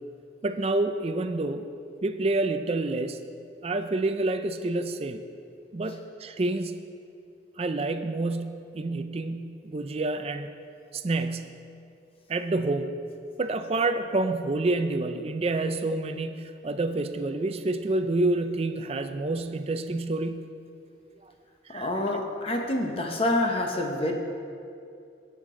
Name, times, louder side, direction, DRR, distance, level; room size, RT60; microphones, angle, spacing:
voice 1, 0.4-1.7 2.0-3.2 3.6-5.2 5.7-6.8 7.6-10.5 10.9-11.5 12.3-13.1 13.4-20.4 21.7-21.9, right 2 dB, 35° right, 8 dB, 0.4 m, -28 dB
voice 2, 21.7-24.1, left 1 dB, 30° left, 2 dB, 0.8 m, -27 dB
17.0 x 6.8 x 3.7 m, 2.5 s
head